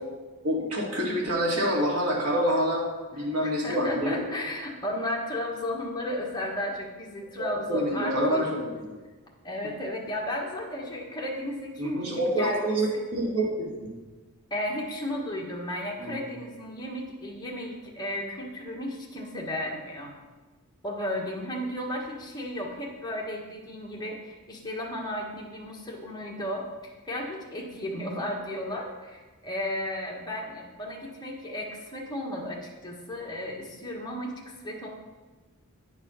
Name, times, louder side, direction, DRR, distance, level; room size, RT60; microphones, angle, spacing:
voice 1, 0.4-2.9 3.1-4.2 7.4-8.8 11.8-12.9 13.1-13.9 16.0-16.2, equal, 75° right, -3 dB, 2.1 m, -27 dB
voice 2, 3.1-8.5 9.4-13.0 14.5-20.1 20.8-34.9, left 1 dB, 20° left, -2 dB, 1.4 m, -34 dB
9.7 x 4.3 x 5.6 m, 1.3 s
head